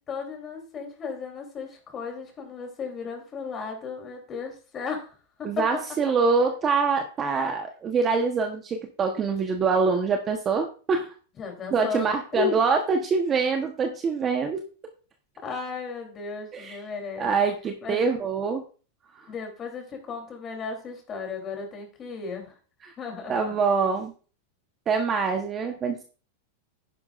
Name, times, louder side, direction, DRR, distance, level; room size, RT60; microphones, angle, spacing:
voice 1, 0.1-5.7 11.3-12.6 15.4-17.3 17.8-18.0 19.3-22.5 23.0-23.5, left 5 dB, 25° left, 2 dB, 3.3 m, -34 dB
voice 2, 5.4-11.1 11.7-14.6 16.5-16.8 17.2-18.6 19.2-19.3 22.8-22.9 23.3-24.1 24.9-26.0, right 5 dB, 25° right, 4 dB, 1.1 m, -25 dB
10.5 x 10.5 x 2.5 m, 0.37 s
supercardioid pair, 145°, 0 cm